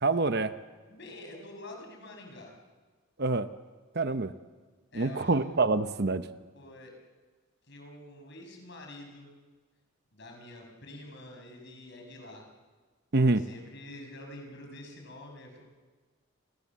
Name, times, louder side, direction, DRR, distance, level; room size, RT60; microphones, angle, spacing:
voice 1, 0.0-0.5 3.2-3.5 3.9-4.3 4.9-6.2 13.1-13.4, right 3 dB, 50° right, 11 dB, 0.9 m, -26 dB
voice 2, 0.9-2.6 4.9-5.4 6.5-6.9 7.7-9.3 10.1-12.5 13.2-15.6, left 1 dB, 55° left, 2 dB, 6.5 m, -47 dB
29.5 x 25.0 x 7.4 m, 1.4 s
head